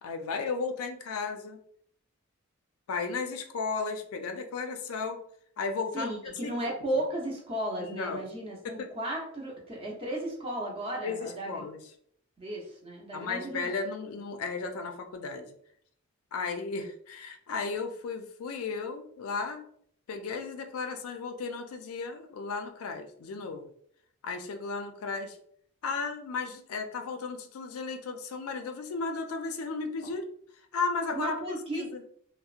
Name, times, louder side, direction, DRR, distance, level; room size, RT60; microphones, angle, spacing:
voice 1, 0.0-1.6 2.9-5.2 5.6-6.1 6.4-6.6 7.8-8.2 8.6-8.9 11.0-11.8 13.1-15.5 16.3-19.7 20.1-23.7 24.2-25.4 25.8-30.2 30.7-31.3 31.7-32.0, left 4 dB, 80° left, 6 dB, 0.4 m, -34 dB
voice 2, 5.9-11.6 12.4-13.7 31.1-31.9, right 1 dB, 25° right, -2 dB, 0.6 m, -35 dB
2.7 x 2.0 x 2.4 m, 0.64 s
head